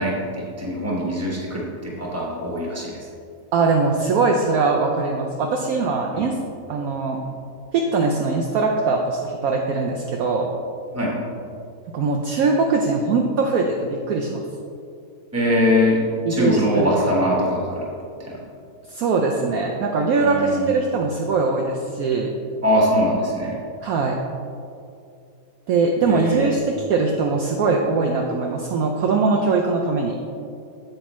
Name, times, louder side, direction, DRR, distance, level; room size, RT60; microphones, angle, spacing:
voice 1, 0.0-2.9 6.1-6.3 10.9-11.2 15.3-17.8 18.3-18.4 20.2-20.7 22.6-23.6 26.0-26.5, equal, 10° right, -4 dB, 1.4 m, -22 dB
voice 2, 3.5-6.4 6.7-7.2 7.7-10.5 11.9-14.4 16.2-16.9 18.9-22.3 23.8-24.2 25.7-30.2, right 4 dB, 70° right, 1 dB, 0.9 m, -21 dB
7.8 x 7.8 x 3.1 m, 2.5 s
omnidirectional pair, 1.8 m